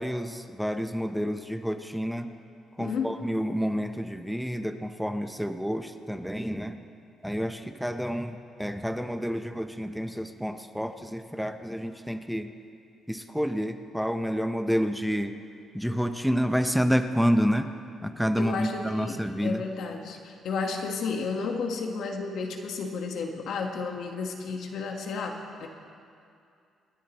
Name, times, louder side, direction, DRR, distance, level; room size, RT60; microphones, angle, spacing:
voice 1, 0.0-2.3 2.8-6.8 7.2-12.5 13.1-15.3 15.7-17.7 18.0-19.6, equal, ahead, 7 dB, 0.7 m, -29 dB
voice 2, 2.8-3.1 18.4-25.7, left 4 dB, 70° left, 3 dB, 1.4 m, -32 dB
27.0 x 10.0 x 3.0 m, 2.5 s
cardioid pair, 80°, 0 cm